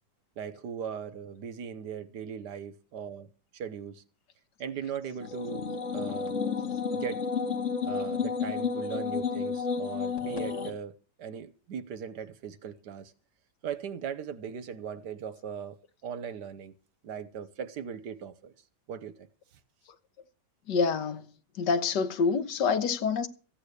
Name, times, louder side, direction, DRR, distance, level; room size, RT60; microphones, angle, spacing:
voice 1, 0.4-4.0 4.6-5.7 5.9-6.3 6.9-7.2 7.8-13.1 13.6-15.8 16.0-16.7 17.0-18.5 18.9-19.1, right 7 dB, 75° right, 1.6 m, -39 dB
sound 1, 5.2-10.7, left 5 dB, 45° left, 2.1 m, -31 dB
voice 2, 20.7-21.3 21.6-23.3, left 5 dB, 85° left, 1.8 m, -27 dB
15.0 x 9.0 x 6.6 m
omnidirectional pair, 1.8 m